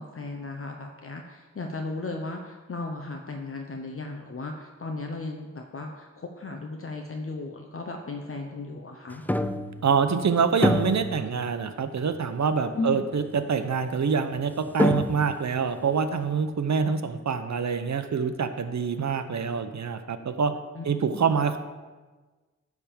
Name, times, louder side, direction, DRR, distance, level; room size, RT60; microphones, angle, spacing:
voice 1, 0.0-9.2 12.7-13.0 20.8-21.4, left 3 dB, 50° left, 3 dB, 0.7 m, -35 dB
sound 1, 9.3-10.2 10.6-11.8 12.2-12.3 13.2-13.3 14.4-14.5 14.8-15.6, left 1 dB, 5° left, 0.3 m, -27 dB
voice 2, 9.8-20.5 20.8-21.6, right 6 dB, 70° right, 10 dB, 0.7 m, -26 dB
10.0 x 3.6 x 7.0 m, 1.3 s
wide cardioid pair, 75°, 29 cm